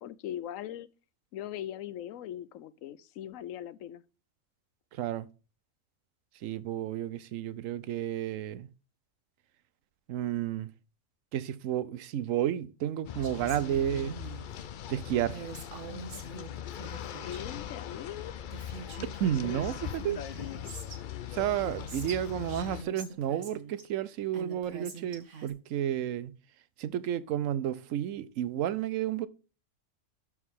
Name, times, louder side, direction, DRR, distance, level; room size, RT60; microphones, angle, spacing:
voice 1, 0.0-0.9 1.3-4.0 17.2-18.3, left 11 dB, 85° left, 1.0 m, -40 dB
voice 2, 4.9-5.3 6.4-8.7 10.1-10.7 11.3-14.2 14.9-15.4 19.0-20.2 21.3-26.3 26.8-29.3, right 11 dB, 85° right, 1.0 m, -31 dB
sound 1, 13.0-22.8, left 9 dB, 60° left, 0.5 m, -40 dB
Female speech woman speaking, 13.2-14.5 15.3-17.6 18.2-18.3 18.5-21.0 21.4-23.8 24.3-25.5, right 5 dB, 70° right, 1.6 m, -45 dB
12.0 x 4.7 x 3.6 m
omnidirectional pair, 1.3 m